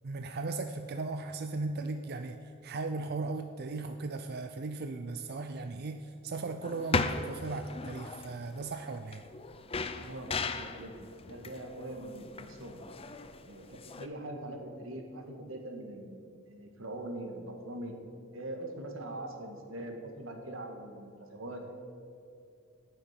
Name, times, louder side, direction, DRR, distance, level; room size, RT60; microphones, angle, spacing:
voice 1, 0.0-9.2, right 3 dB, 50° right, 7 dB, 0.5 m, -37 dB
sound 1, 6.6-14.1, left 4 dB, 30° left, 0.5 m, -37 dB
voice 2, 10.0-12.8 13.4-17.9 18.3-21.7, right 1 dB, 90° right, 3 dB, 1.7 m, -42 dB
17.5 x 6.6 x 5.8 m, 2.5 s
head